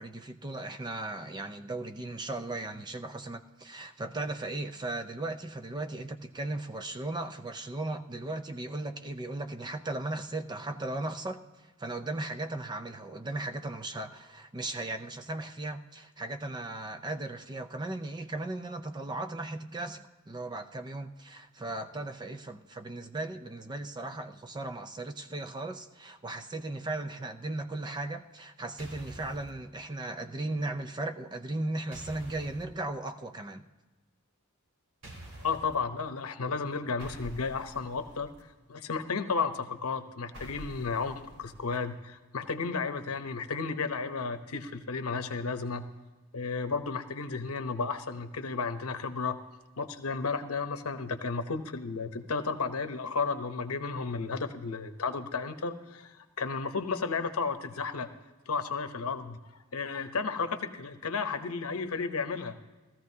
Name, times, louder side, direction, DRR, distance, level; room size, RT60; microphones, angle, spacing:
voice 1, 0.0-33.7, right 2 dB, 20° right, 8 dB, 0.5 m, -37 dB
sound 1, 28.8-29.5 31.9-32.6 35.0-35.7 37.0-38.4 40.3-41.8, equal, 70° right, 3.9 m, -47 dB
voice 2, 35.4-38.3 38.7-45.9 46.3-49.4 49.8-58.1 58.5-59.4 59.7-62.6, left 4 dB, 90° left, 9 dB, 0.9 m, -33 dB
16.5 x 14.0 x 2.7 m, 1.2 s
head